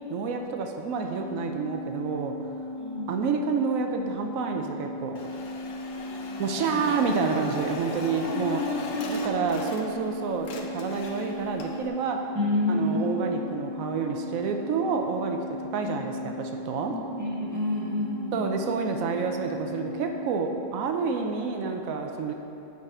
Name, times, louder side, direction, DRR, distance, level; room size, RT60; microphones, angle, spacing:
voice 1, 0.1-2.3 3.1-5.2 6.4-8.7 9.0-12.3 12.7-15.4 15.7-17.0 18.3-22.3, right 5 dB, 75° right, 4 dB, 0.7 m, -29 dB
sound 1, 1.0-20.6, left 1 dB, 90° left, 1.5 m, -37 dB
voice 2, 2.8-3.2 5.6-6.1 6.7-7.2 7.9-9.7 12.3-13.4 15.8-16.1 16.8-18.5, left 2 dB, 10° right, -7 dB, 1.2 m, -31 dB
sound 2, 5.1-10.1 10.4-11.9, left 3 dB, 65° left, 0.8 m, -39 dB
8.9 x 4.1 x 4.8 m, 2.8 s
omnidirectional pair, 2.0 m